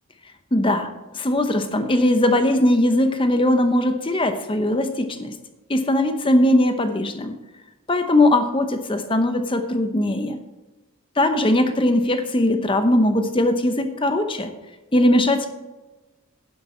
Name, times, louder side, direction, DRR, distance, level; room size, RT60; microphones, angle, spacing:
voice 1, 0.5-5.3 5.7-7.4 7.9-10.4 11.2-14.5 14.9-15.5, left 1 dB, 25° left, 8 dB, 0.8 m, -20 dB
10.0 x 7.6 x 4.3 m, 1.1 s
head